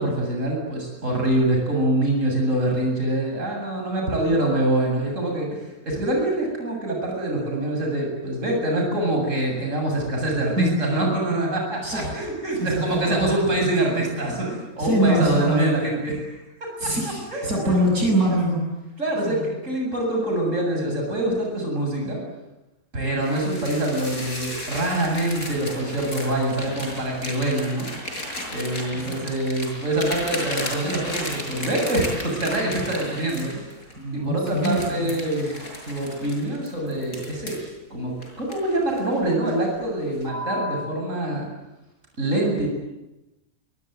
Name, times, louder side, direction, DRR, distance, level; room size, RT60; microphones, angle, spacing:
voice 1, 0.0-16.9 17.3-17.7 19.0-22.2 22.9-27.9 28.5-33.7 34.1-35.6 35.9-37.6 37.9-41.5 42.2-42.7, right 1 dB, 55° right, 0 dB, 8.1 m, -25 dB
voice 2, 4.0-4.3 10.6-10.8 11.8-12.1 12.6-13.3 14.8-15.7 16.8-18.7 19.3-19.4 29.1-29.2 34.0-35.1, right 1 dB, 80° right, 0 dB, 8.1 m, -24 dB
sound 1, 23.2-34.0 34.5-37.7 38.2-39.1 39.5-39.8 40.2-40.8, left 1 dB, 70° left, 7.3 m, -34 dB
27.0 x 24.0 x 9.3 m, 0.99 s
omnidirectional pair, 1.5 m